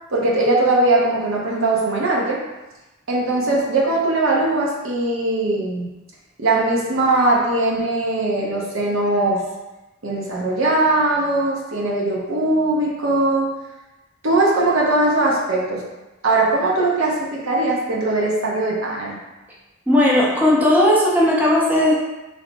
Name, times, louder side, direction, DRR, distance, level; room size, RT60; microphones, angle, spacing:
voice 1, 0.1-2.4 3.1-5.9 6.4-9.4 10.0-13.5 14.2-15.8 16.2-19.2, right 2 dB, 75° right, -3 dB, 0.7 m, -20 dB
voice 2, 19.9-21.9, left 1 dB, 10° right, -6 dB, 0.6 m, -16 dB
3.2 x 2.0 x 3.9 m, 1.1 s
head